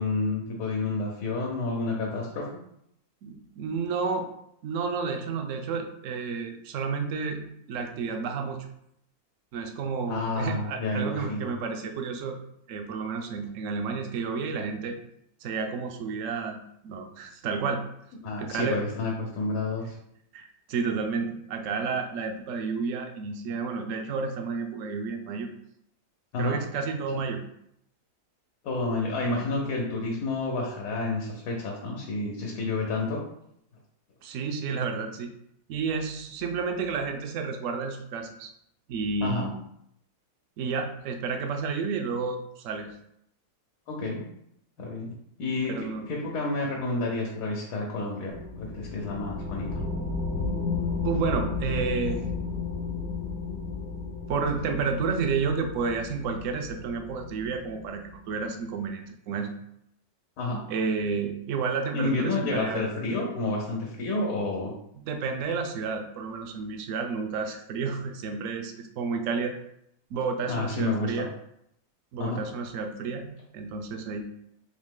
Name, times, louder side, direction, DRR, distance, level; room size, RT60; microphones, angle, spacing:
voice 1, 0.0-2.5 10.1-11.5 18.2-20.0 26.3-26.6 27.1-27.2 28.6-33.2 39.2-39.5 43.9-44.2 44.8-49.8 60.4-60.6 61.9-64.7 70.5-71.2 72.2-72.4, left 2 dB, 80° left, -2 dB, 1.3 m, -30 dB
voice 2, 3.2-4.3 4.6-7.4 7.7-8.7 9.5-12.4 12.7-15.0 15.4-17.8 18.4-18.8 20.3-25.5 26.4-27.4 34.2-35.3 35.7-38.5 38.9-39.6 40.6-42.9 45.7-46.1 51.0-52.3 54.3-59.5 60.7-62.8 65.0-69.5 70.1-71.3 72.1-74.2, right 5 dB, 65° right, 4 dB, 0.8 m, -31 dB
sound 1, 48.3-58.3, left 4 dB, 55° left, 0.9 m, -33 dB
3.9 x 2.8 x 3.6 m, 0.75 s
omnidirectional pair, 1.7 m